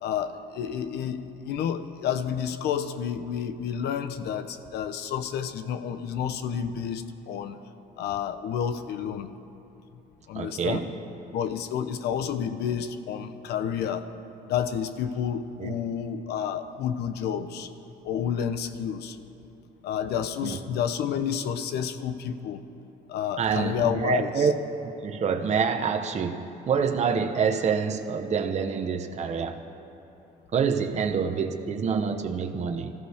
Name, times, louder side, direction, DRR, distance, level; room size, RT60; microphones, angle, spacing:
voice 1, 0.0-7.6 8.0-9.3 10.3-10.8 11.3-14.1 14.5-17.7 18.0-19.2 19.8-22.6 23.1-24.5, left 8 dB, 75° left, 10 dB, 1.0 m, -30 dB
voice 2, 10.3-10.9 15.6-15.7 20.4-20.6 23.4-24.5 24.8-29.6 30.5-32.9, right 6 dB, 40° right, 4 dB, 1.1 m, -26 dB
25.0 x 14.5 x 3.6 m, 2.9 s
cardioid pair, 110°, 17 cm